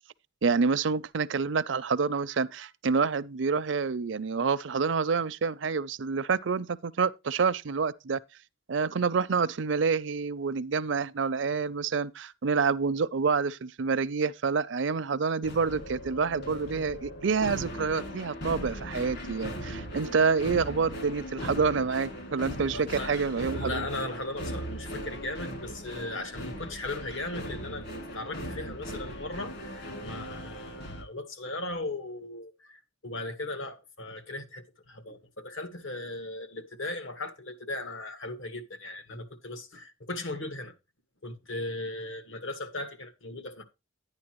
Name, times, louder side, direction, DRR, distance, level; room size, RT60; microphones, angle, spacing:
voice 1, 0.4-8.2 8.7-23.8, right 5 dB, 65° right, 0.5 m, -28 dB
sound 1, 15.4-31.0, equal, 55° left, 2.5 m, -39 dB
voice 2, 22.7-23.1 23.5-27.8 28.1-40.7 41.2-43.6, left 2 dB, 75° left, 1.9 m, -37 dB
11.0 x 9.7 x 3.0 m
head